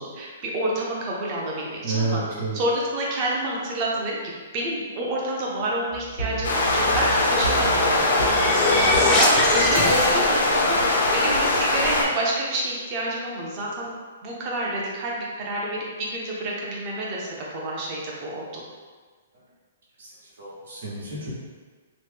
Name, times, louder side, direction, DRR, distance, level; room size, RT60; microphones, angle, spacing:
voice 1, 0.0-2.2 2.5-4.2 4.5-13.9 14.2-17.3 17.5-18.6, right 1 dB, 25° right, -3 dB, 0.6 m, -28 dB
voice 2, 1.8-2.6 19.3-19.4 20.0-21.3, right 3 dB, 75° right, -6 dB, 1.1 m, -30 dB
sound 1, 5.9-10.0, right 3 dB, 90° left, 1.0 m, -34 dB
sound 2, 6.4-12.0, left 2 dB, 70° left, 0.6 m, -21 dB
sound 3, 7.7-10.7, left 2 dB, 20° left, 0.4 m, -23 dB
3.0 x 2.1 x 3.3 m, 1.5 s
hypercardioid pair, 170°, 0 cm